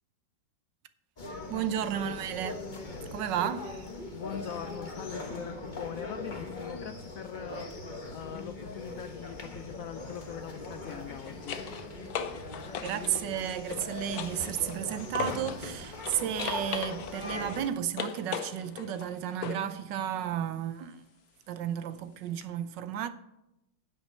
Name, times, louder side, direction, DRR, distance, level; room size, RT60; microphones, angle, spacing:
sound 1, 1.2-17.7, left 2 dB, 30° left, 1.1 m, -40 dB
voice 1, 1.5-2.6 3.1-3.9 12.8-21.0 21.5-23.1, right 10 dB, 75° right, 1.3 m, -33 dB
voice 2, 4.1-11.6, left 9 dB, 85° left, 0.7 m, -42 dB
sound 2, 8.2-8.4 10.7-15.7 16.0-19.8 22.4-22.5, left 7 dB, 65° left, 1.2 m, -39 dB
9.9 x 8.9 x 4.4 m
omnidirectional pair, 2.0 m